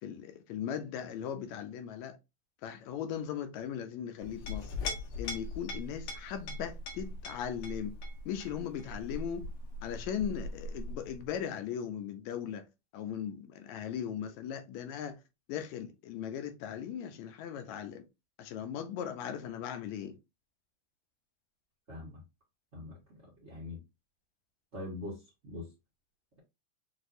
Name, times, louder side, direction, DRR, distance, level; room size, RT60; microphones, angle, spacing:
voice 1, 0.0-2.2 2.6-4.7 5.2-8.0 8.3-9.5 9.8-12.7 12.9-15.2 15.5-18.0 18.4-20.2, left 9 dB, 80° left, 1.9 m, -38 dB
Chink clink, 4.2-11.3, left 2 dB, 60° left, 1.9 m, -40 dB
voice 2, 21.9-22.2 22.7-23.0 23.4-23.8 24.7-25.2 25.4-25.7, left 2 dB, 75° right, 0.6 m, -42 dB
6.1 x 2.5 x 2.6 m
omnidirectional pair, 3.4 m